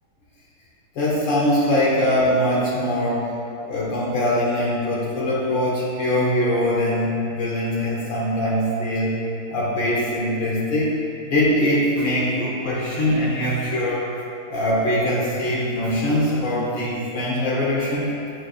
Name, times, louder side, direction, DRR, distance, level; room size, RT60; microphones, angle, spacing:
voice 1, 0.9-3.3 3.6-9.2 9.5-14.1 14.5-18.2, left 1 dB, 65° left, -6 dB, 1.6 m, -22 dB
9.0 x 7.5 x 2.4 m, 2.6 s
omnidirectional pair, 2.3 m